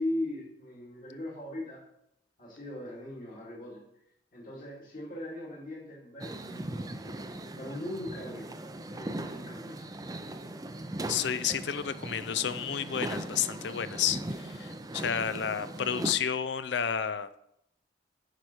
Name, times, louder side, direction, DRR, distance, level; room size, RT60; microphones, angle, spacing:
voice 1, 0.0-1.8 2.4-3.8 4.3-7.2 7.6-8.5 8.9-9.7, left 1 dB, 45° left, -5 dB, 2.4 m, -39 dB
sound 1, 6.2-16.2, right 1 dB, 20° right, 0.5 m, -39 dB
voice 2, 11.1-17.3, left 8 dB, 60° left, 13 dB, 0.5 m, -31 dB
10.5 x 4.9 x 4.4 m, 0.77 s
head